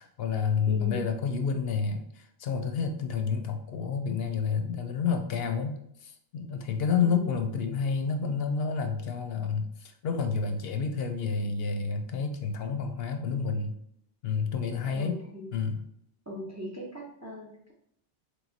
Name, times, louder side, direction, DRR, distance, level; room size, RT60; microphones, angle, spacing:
voice 1, 0.0-13.7 14.2-15.2 15.5-15.8, left 5 dB, 75° left, 6 dB, 0.8 m, -29 dB
voice 2, 0.7-1.1 7.0-7.5 14.9-15.5 16.3-17.7, left 1 dB, 20° right, -1 dB, 0.5 m, -39 dB
3.3 x 3.1 x 3.9 m, 0.72 s
omnidirectional pair, 1.1 m